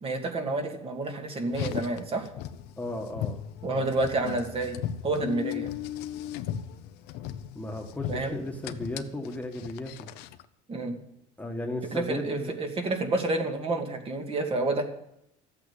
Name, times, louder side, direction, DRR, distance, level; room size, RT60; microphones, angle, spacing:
voice 1, 0.0-2.3 3.6-5.7 8.1-8.4 10.7-11.0 11.9-14.8, right 2 dB, 35° right, 4 dB, 2.3 m, -29 dB
Car, 1.5-10.4, left 10 dB, 80° left, 0.8 m, -37 dB
voice 2, 2.8-3.4 3.7-3.9 7.5-10.1 11.4-12.6, left 1 dB, 10° left, 2 dB, 1.7 m, -35 dB
13.5 x 8.6 x 8.3 m, 0.79 s
cardioid pair, 125°, 17 cm